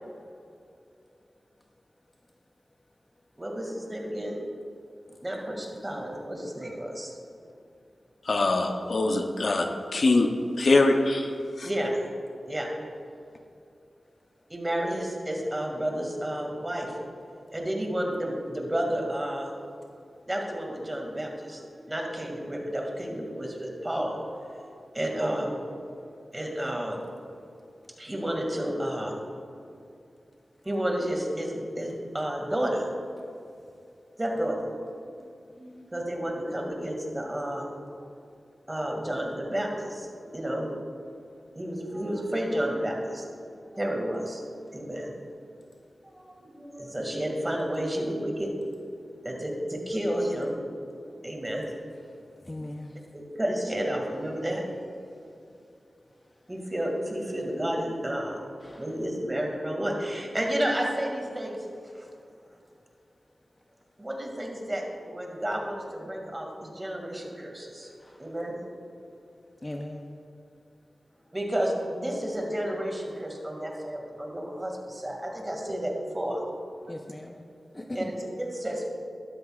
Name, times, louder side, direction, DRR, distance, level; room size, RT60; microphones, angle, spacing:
voice 1, 3.4-4.4 5.2-7.1 11.6-11.9 12.5-12.7 14.5-17.0 17.5-19.5 20.3-25.6 26.0-27.0 28.0-29.5 30.6-32.9 34.2-34.8 35.5-37.7 38.7-40.7 41.6-44.4 44.7-45.1 46.0-48.5 49.2-50.8 51.1-51.7 53.1-54.9 56.5-61.6 62.0-62.1 64.0-67.9 68.2-68.6 71.3-76.4 77.9-78.9, right 1 dB, 20° right, 0 dB, 2.1 m, -31 dB
voice 2, 8.2-10.3 10.6-11.3 11.6-11.7, left 2 dB, 65° left, 4 dB, 0.7 m, -23 dB
voice 3, 52.4-53.0 58.6-58.8 68.0-68.2 69.6-70.1 76.9-77.4 77.7-78.1, left 1 dB, 25° left, 3 dB, 0.7 m, -38 dB
13.0 x 12.0 x 2.4 m, 2.5 s
wide cardioid pair, 65°, 0 cm